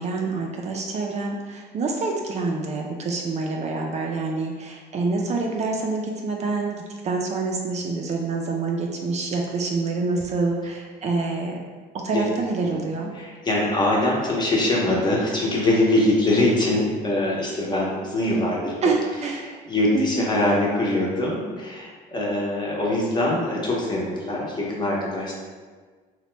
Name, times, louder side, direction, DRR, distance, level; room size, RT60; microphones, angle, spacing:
voice 1, 0.0-11.6 11.9-13.1 18.8-19.4 19.9-20.3, right 3 dB, 40° right, 0 dB, 0.4 m, -26 dB
voice 2, 13.1-18.9 19.4-25.3, left 1 dB, 25° left, -3 dB, 0.7 m, -23 dB
3.0 x 2.1 x 3.1 m, 1.5 s
cardioid pair, 110°, 17 cm